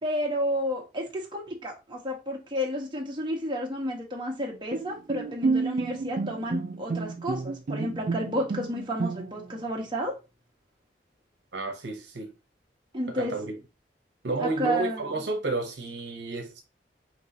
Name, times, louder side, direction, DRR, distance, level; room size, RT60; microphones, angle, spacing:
voice 1, 0.0-10.1 12.9-13.3 14.4-15.1, equal, 25° right, 1.2 m, -31 dB
Bowed string instrument, 4.7-9.6, right 4 dB, 45° right, 0.3 m, -30 dB
voice 2, 11.5-12.3 13.1-13.6 14.2-16.6, right 2 dB, 75° right, 0.9 m, -31 dB
5.8 x 3.0 x 2.8 m
head